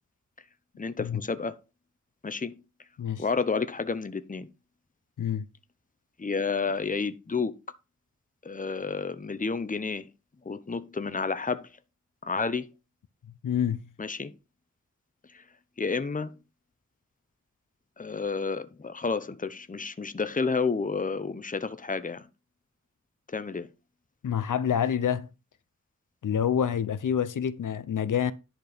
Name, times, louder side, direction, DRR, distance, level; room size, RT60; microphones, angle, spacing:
voice 1, 0.8-1.6 2.2-2.5 3.2-4.5 6.2-7.6 8.4-10.1 10.4-11.7 12.2-12.7 14.0-14.3 15.3-15.4 15.8-16.3 18.0-22.3 23.3-23.7, left 4 dB, 25° left, 0.8 m, -30 dB
voice 2, 13.4-13.8 24.2-25.3 26.2-28.3, left 8 dB, 80° left, 0.8 m, -27 dB
10.5 x 4.5 x 5.1 m
wide cardioid pair, 70°, 31 cm